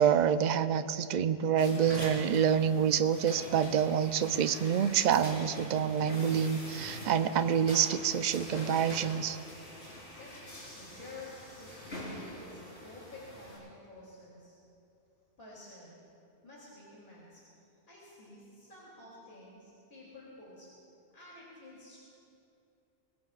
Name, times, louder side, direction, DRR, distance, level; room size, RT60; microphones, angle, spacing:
voice 1, 0.0-9.4, right 8 dB, 55° right, 11 dB, 0.6 m, -27 dB
sound 1, 1.6-13.6, left 1 dB, 80° left, 4.6 m, -45 dB
voice 2, 10.1-10.4 10.7-14.6 15.4-16.0 16.4-17.4 17.9-20.7 21.1-22.0, left 2 dB, 65° left, -6 dB, 3.2 m, -51 dB
23.5 x 21.0 x 2.4 m, 2.7 s
omnidirectional pair, 1.1 m